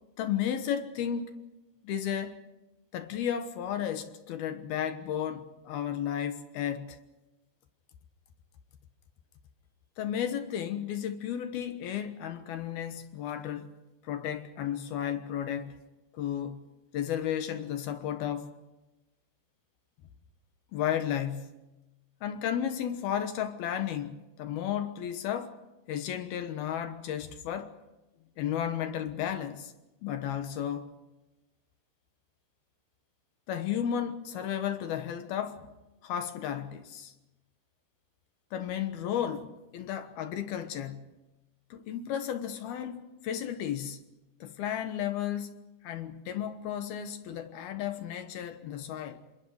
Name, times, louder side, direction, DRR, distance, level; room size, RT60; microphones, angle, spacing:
voice 1, 0.2-1.4 1.8-2.4 2.9-7.0 10.0-13.7 14.0-15.8 16.1-16.7 16.9-18.5 20.7-21.6 22.2-25.6 25.9-27.7 28.4-29.7 30.0-30.9 33.5-35.7 36.0-37.1 38.5-41.2 41.7-44.1 44.4-49.2, left 9 dB, 70° left, 2.7 m, -33 dB
28.5 x 24.0 x 4.9 m
omnidirectional pair, 5.4 m